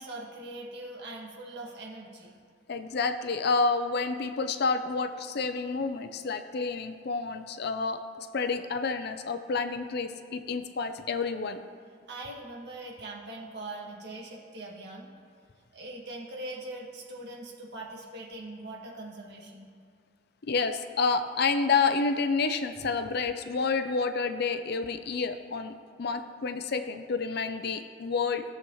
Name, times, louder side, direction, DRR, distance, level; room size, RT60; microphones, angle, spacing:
voice 1, 0.0-2.4 12.1-15.1 15.7-19.7, right 2 dB, 65° right, -2 dB, 1.7 m, -41 dB
voice 2, 2.7-11.6 20.5-28.4, left 4 dB, 60° left, 9 dB, 0.6 m, -29 dB
16.5 x 7.1 x 3.1 m, 2.3 s
head